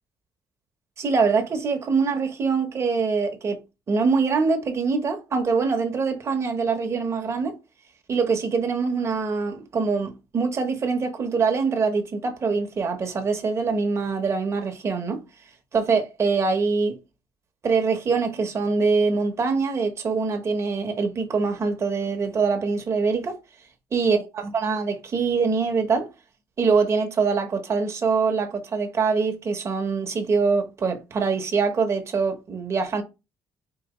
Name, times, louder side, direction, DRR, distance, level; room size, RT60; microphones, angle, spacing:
voice 1, 1.0-3.6 3.9-7.5 8.1-15.2 15.7-17.0 17.6-23.3 23.9-26.1 26.6-33.0, right 4 dB, 35° right, 1.0 m, -24 dB
4.8 x 2.9 x 3.0 m
cardioid pair, 140°, 8 cm